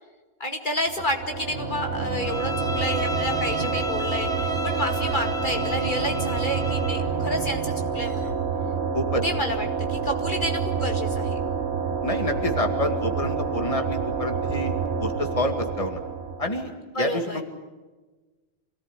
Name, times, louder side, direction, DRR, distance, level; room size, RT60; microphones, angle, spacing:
voice 1, 0.4-8.3 9.2-11.4 16.9-17.4, equal, 50° left, 3 dB, 2.4 m, -30 dB
sound 1, 0.8-16.7, right 5 dB, 80° right, 1.5 m, -28 dB
sound 2, 1.5-8.3, right 1 dB, 85° left, 3.2 m, -39 dB
Bowed string instrument, 2.2-7.1, left 1 dB, 5° left, 1.3 m, -33 dB
voice 2, 12.0-14.7 15.0-16.0 16.4-17.4, left 1 dB, 30° left, 5 dB, 2.3 m, -28 dB
27.0 x 18.5 x 9.9 m, 1.2 s
omnidirectional pair, 1.1 m